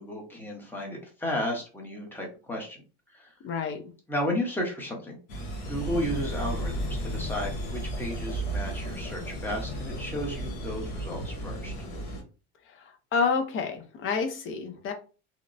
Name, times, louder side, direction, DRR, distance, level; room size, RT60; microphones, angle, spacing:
voice 1, 0.0-2.8 3.1-3.3 4.1-5.2 5.7-11.9, left 1 dB, 5° left, -1 dB, 0.8 m, -33 dB
voice 2, 3.4-3.9 12.8-14.9, left 5 dB, 40° left, 6 dB, 0.6 m, -29 dB
sound 1, 5.3-12.2, right 1 dB, 85° left, 1.0 m, -34 dB
2.9 x 2.0 x 2.5 m, 0.35 s
supercardioid pair, 125°, 32 cm